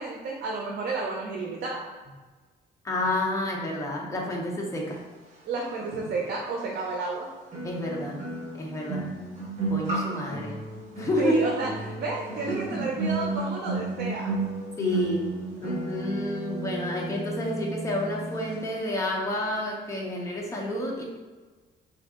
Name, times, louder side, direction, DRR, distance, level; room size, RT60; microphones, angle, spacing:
voice 1, 0.0-1.8 5.5-7.3 11.2-14.4, right 3 dB, 65° right, -1 dB, 0.6 m, -31 dB
voice 2, 2.8-5.0 7.6-8.2 8.6-9.1 9.7-10.6 11.0-11.3 12.5-12.8 14.8-15.3 15.6-21.0, left 1 dB, 15° left, -2 dB, 0.7 m, -30 dB
sound 1, 6.1-6.2 7.5-18.6 18.9-19.1, right 2 dB, 40° right, 1.2 m, -33 dB
3.6 x 2.6 x 3.6 m, 1.3 s
cardioid pair, 140°, 18 cm